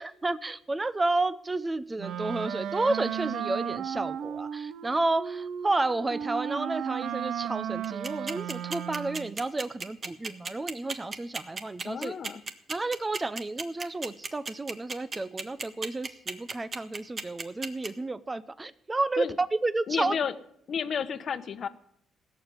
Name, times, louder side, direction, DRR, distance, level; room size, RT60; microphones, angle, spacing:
voice 1, 0.0-12.1 12.7-20.1, right 2 dB, 20° right, 15 dB, 0.7 m, -31 dB
Wind instrument woodwind instrument, 2.0-9.4, right 9 dB, 75° right, 0.8 m, -35 dB
sound 1, 7.8-17.9, right 4 dB, 40° right, 1.6 m, -33 dB
voice 2, 11.8-12.4 19.2-19.3 19.9-20.3 20.7-21.7, left 7 dB, 55° left, 12 dB, 1.0 m, -31 dB
17.0 x 7.2 x 9.7 m, 0.70 s
cardioid pair, 90°, 0 cm